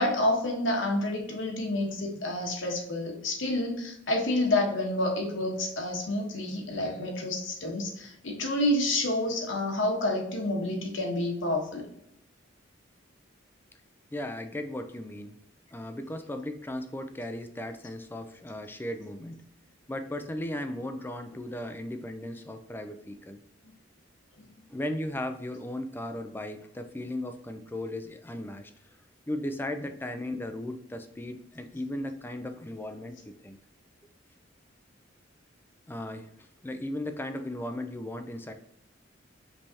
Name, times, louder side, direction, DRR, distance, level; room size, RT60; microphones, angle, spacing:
voice 1, 0.0-11.9 24.4-24.5, left 1 dB, 75° left, 1 dB, 1.2 m, -29 dB
voice 2, 14.1-15.4 15.7-19.4 19.9-23.4 24.7-28.7 29.3-33.6 35.9-36.3 36.6-38.5, left 1 dB, 10° left, 8 dB, 0.3 m, -36 dB
5.3 x 3.2 x 2.8 m, 0.77 s
head